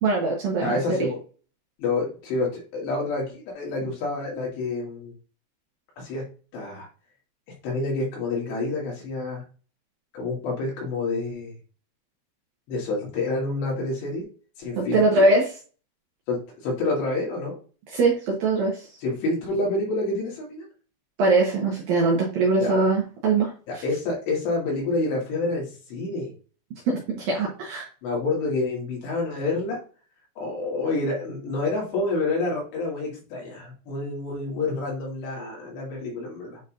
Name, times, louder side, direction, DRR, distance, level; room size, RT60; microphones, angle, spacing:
voice 1, 0.0-1.0 14.8-15.5 17.9-18.9 21.2-23.8 26.9-27.9, right 3 dB, 65° right, -2 dB, 2.4 m, -22 dB
voice 2, 0.6-1.2 1.8-5.1 6.0-6.2 6.5-6.9 7.6-9.4 10.1-11.5 12.7-14.3 14.6-15.3 16.3-17.6 19.0-20.7 22.6-22.7 23.7-26.3 28.0-29.8 30.4-36.6, left 2 dB, 65° left, -3 dB, 4.4 m, -28 dB
9.2 x 4.1 x 2.6 m, 0.37 s
omnidirectional pair, 5.5 m